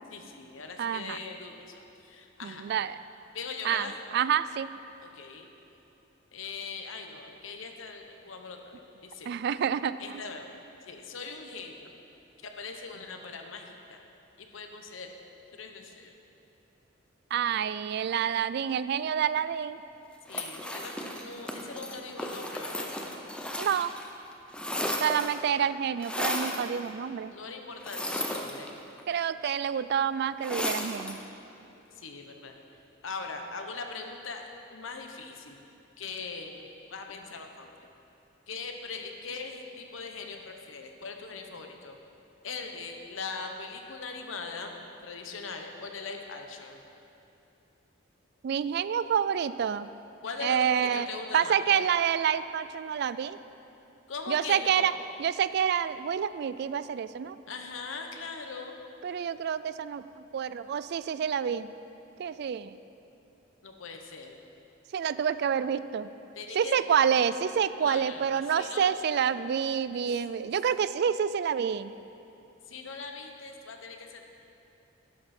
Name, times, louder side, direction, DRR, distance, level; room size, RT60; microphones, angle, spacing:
voice 1, 0.1-2.7 3.3-4.0 5.0-5.5 6.3-9.3 10.0-10.5 10.8-11.9 12.6-14.0 14.4-15.1 15.5-16.1 20.3-22.9 27.3-28.7 32.0-32.5 33.0-35.6 36.0-37.7 38.5-42.0 42.4-46.8 50.2-51.8 54.1-55.0 57.5-58.7 63.6-64.4 66.3-66.8 67.2-67.3 67.8-68.9 69.9-70.2 72.7-74.3, left 4 dB, 85° left, 4 dB, 1.0 m, -41 dB
voice 2, 0.8-1.2 2.4-3.0 3.6-4.7 9.3-10.2 17.3-19.8 23.6-23.9 25.0-27.3 29.1-31.2 48.4-49.9 50.4-51.1 51.3-53.4 54.3-54.9 55.2-57.4 59.0-60.0 60.3-61.7 62.2-62.8 64.9-66.1 66.5-71.9, right 8 dB, 55° right, 15 dB, 0.3 m, -28 dB
sound 1, 20.3-24.1 24.3-25.5 26.0-26.7 27.8-29.0 30.4-31.2, left 1 dB, 5° left, 0.7 m, -34 dB
11.5 x 10.5 x 4.3 m, 2.9 s
head